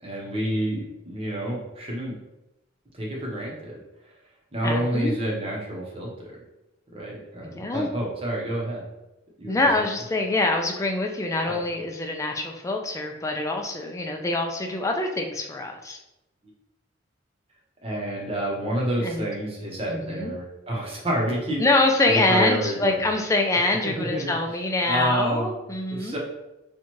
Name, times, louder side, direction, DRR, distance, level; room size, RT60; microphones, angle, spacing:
voice 1, 0.0-2.1 2.9-3.8 4.5-6.1 6.9-8.8 9.4-9.7 11.5-11.6 17.8-21.6 22.1-23.0 23.8-24.3 24.8-25.5 25.9-26.2, right 1 dB, 30° right, -3 dB, 0.9 m, -28 dB
voice 2, 4.6-5.1 7.4-7.9 9.5-16.0 19.0-19.2 19.9-20.4 21.6-26.1, left 2 dB, 15° left, 2 dB, 0.4 m, -25 dB
4.3 x 2.4 x 3.0 m, 0.95 s
head